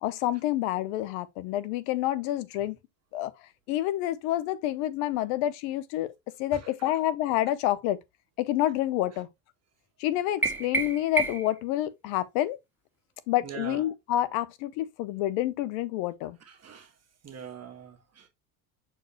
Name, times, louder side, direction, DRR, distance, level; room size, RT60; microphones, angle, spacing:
voice 1, 0.0-2.8 3.1-3.3 3.7-6.1 6.4-8.0 8.4-9.3 10.0-12.6 13.3-16.4, left 13 dB, 70° left, 1.1 m, -28 dB
sound 1, 10.4-11.6, right 3 dB, 5° right, 2.4 m, -29 dB
voice 2, 13.4-13.8 16.5-16.9 17.2-18.3, right 8 dB, 35° right, 1.7 m, -42 dB
7.6 x 4.7 x 3.1 m
hypercardioid pair, 80°, 43 cm